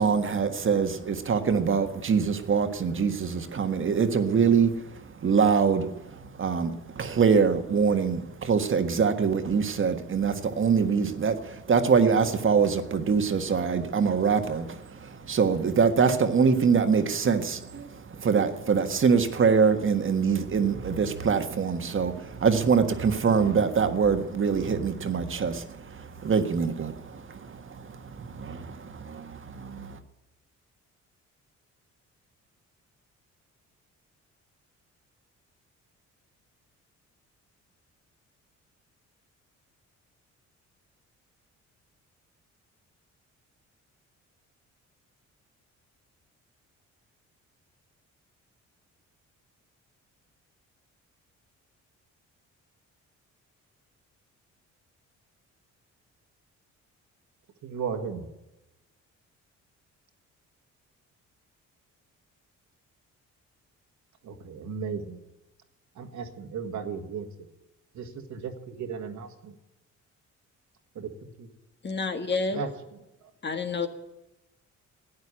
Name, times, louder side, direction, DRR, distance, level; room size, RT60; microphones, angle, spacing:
voice 1, 0.0-30.0, right 6 dB, 40° right, 8 dB, 1.6 m, -24 dB
voice 2, 57.6-58.3 64.2-65.2 66.0-67.5 67.9-69.5 71.0-71.5 72.5-72.7, right 6 dB, 70° right, 6 dB, 1.9 m, -35 dB
voice 3, 71.8-72.7 73.4-73.9, left 4 dB, 35° left, 7 dB, 1.7 m, -29 dB
12.5 x 9.5 x 9.7 m, 0.99 s
cardioid pair, 90°, 30 cm